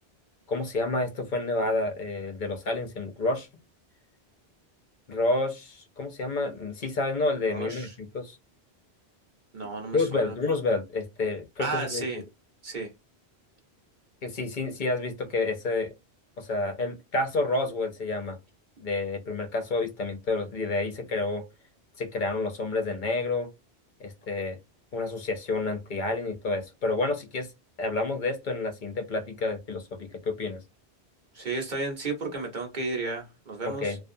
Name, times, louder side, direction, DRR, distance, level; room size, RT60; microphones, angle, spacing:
voice 1, 0.5-3.5 5.1-8.4 9.9-12.0 14.2-15.9 16.4-18.4 18.8-21.4 22.0-23.5 24.0-24.6 24.9-27.5 27.8-30.6 33.6-34.0, left 2 dB, 50° left, 0.8 m, -29 dB
voice 2, 7.5-7.9 9.5-10.3 11.6-12.2 12.6-12.9 31.3-34.0, right 3 dB, 45° right, 1.1 m, -33 dB
2.5 x 2.3 x 2.6 m
omnidirectional pair, 1.1 m